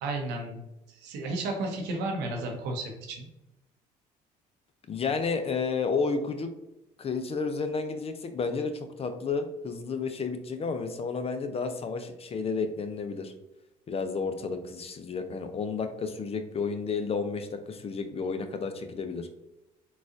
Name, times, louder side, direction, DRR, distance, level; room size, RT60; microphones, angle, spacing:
voice 1, 0.0-0.6 1.0-3.3, right 2 dB, 80° right, 2 dB, 0.8 m, -33 dB
voice 2, 4.9-6.5 7.0-13.3 13.9-19.3, left 4 dB, 35° left, 8 dB, 0.5 m, -31 dB
3.9 x 2.4 x 2.5 m, 0.93 s
supercardioid pair, 70°, 18 cm